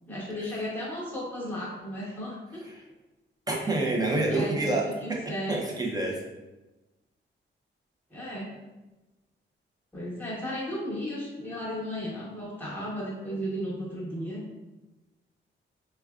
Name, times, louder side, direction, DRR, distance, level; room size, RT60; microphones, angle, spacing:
voice 1, 0.1-2.6 3.5-3.8 4.1-5.6 8.1-8.5 9.9-14.4, equal, 10° left, -7 dB, 1.0 m, -35 dB
voice 2, 3.5-5.2 5.5-6.2, right 2 dB, 20° right, -1 dB, 0.6 m, -27 dB
4.7 x 2.2 x 2.3 m, 1.1 s
wide cardioid pair, 145°, 20 cm